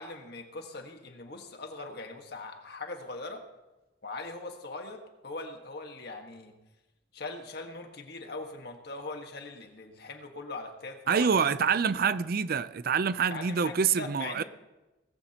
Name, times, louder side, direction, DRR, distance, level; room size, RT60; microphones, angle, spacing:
voice 1, 0.0-3.4 4.0-6.5 7.1-11.3 12.0-12.2 13.3-14.4, left 3 dB, 60° left, 1.6 m, -41 dB
voice 2, 11.1-14.4, right 6 dB, 55° right, 0.5 m, -26 dB
19.0 x 14.5 x 2.9 m
head